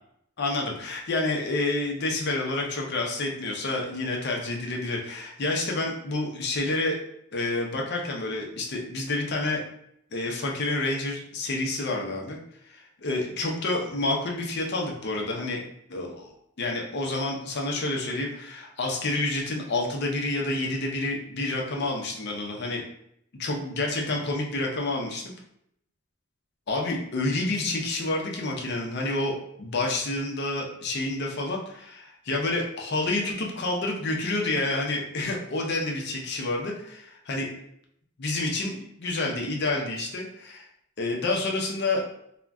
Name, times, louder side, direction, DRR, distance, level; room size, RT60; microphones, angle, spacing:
voice 1, 0.4-7.0 7.3-9.6 10.1-12.4 12.7-15.6 15.9-16.3 16.6-22.8 23.4-25.3 26.7-37.5 38.2-40.6 41.0-42.0, left 2 dB, 55° left, 0 dB, 0.6 m, -29 dB
2.5 x 2.1 x 3.4 m, 0.74 s
head